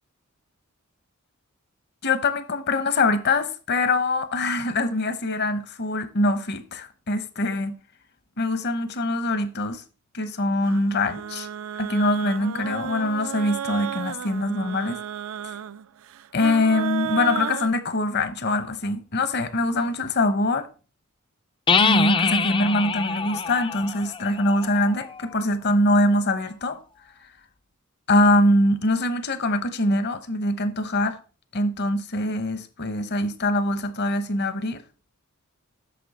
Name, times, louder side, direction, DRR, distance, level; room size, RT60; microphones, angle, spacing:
voice 1, 2.0-7.7 8.4-9.8 10.1-11.5 11.8-15.0 16.3-20.7 21.8-26.8 28.1-31.2 31.5-34.8, left 1 dB, 55° left, 0.9 m, -23 dB
sound 1, 10.6-17.7, right 9 dB, 70° right, 0.3 m, -33 dB
sound 2, 21.7-25.3, left 5 dB, 25° left, 0.4 m, -25 dB
8.5 x 6.5 x 4.1 m
head